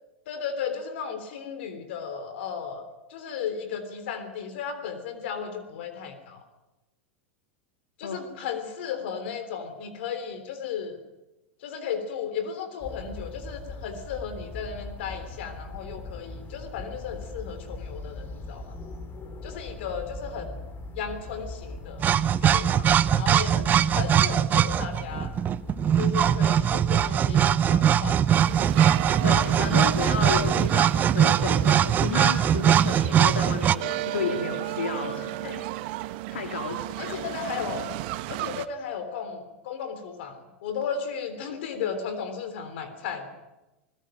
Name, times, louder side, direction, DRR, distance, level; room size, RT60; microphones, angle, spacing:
voice 1, 0.3-2.8 3.1-6.4 8.0-11.0 11.6-18.7 19.4-20.6 20.9-22.0 22.4-25.3 26.0-28.2 35.4-35.6 37.0-37.9 38.3-43.3, left 7 dB, 70° left, 10 dB, 3.5 m, -35 dB
sound 1, 12.8-30.5, left 2 dB, 30° left, 4.1 m, -40 dB
sound 2, 22.0-33.7, right 9 dB, 30° right, 0.7 m, -21 dB
sound 3, 28.3-38.7, right 16 dB, 60° right, 1.2 m, -34 dB
voice 2, 29.2-35.6 36.3-37.2, left 5 dB, 90° left, 4 dB, 2.8 m, -32 dB
20.5 x 20.0 x 9.1 m, 1.0 s
hypercardioid pair, 115°, 6 cm